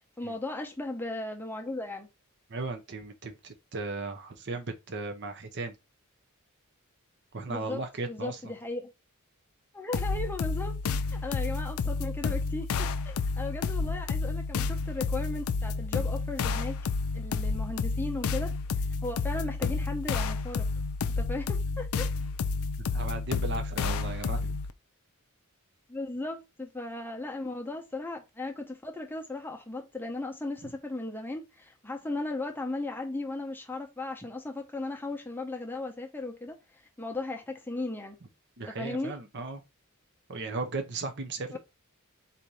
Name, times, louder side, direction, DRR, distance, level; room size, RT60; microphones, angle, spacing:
voice 1, 0.2-2.1 7.5-8.9 9.7-10.8 11.1-16.8 17.1-18.5 19.0-20.7 21.2-22.1 25.9-38.2 38.7-39.1 41.5-41.6, left 2 dB, 10° left, 0.7 m, -36 dB
voice 2, 2.5-5.8 7.3-8.5 22.9-24.6 30.6-30.7 38.6-39.6 40.3-41.6, right 3 dB, 50° right, 0.7 m, -36 dB
sound 1, 9.9-24.7, left 4 dB, 70° left, 0.4 m, -30 dB
4.2 x 2.7 x 4.7 m
head